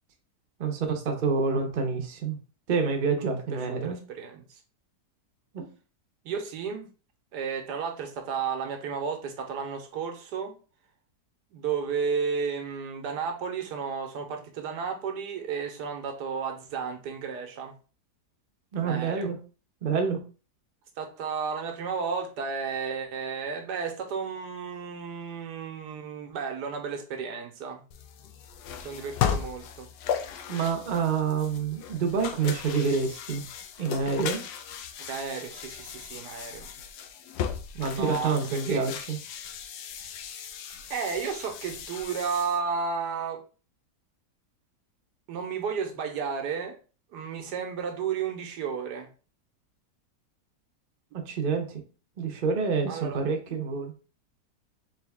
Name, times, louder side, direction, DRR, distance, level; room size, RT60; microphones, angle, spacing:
voice 1, 0.6-2.4 2.7-4.0 5.5-5.7 18.7-19.4 19.8-20.2 30.5-33.4 33.8-34.4 37.7-39.2 51.1-51.8 52.2-53.9, right 5 dB, 40° right, 3 dB, 0.7 m, -27 dB
voice 2, 3.7-4.6 6.2-6.9 7.3-10.5 11.5-17.7 18.8-19.3 21.0-27.8 28.8-29.9 35.0-36.7 37.9-38.8 40.0-40.1 40.9-43.4 45.3-46.8 47.1-49.1 52.9-53.2, right 6 dB, 85° right, 4 dB, 1.4 m, -33 dB
sound 1, 27.9-42.6, left 8 dB, 80° left, 1.2 m, -36 dB
3.7 x 3.1 x 3.5 m, 0.36 s
omnidirectional pair, 1.8 m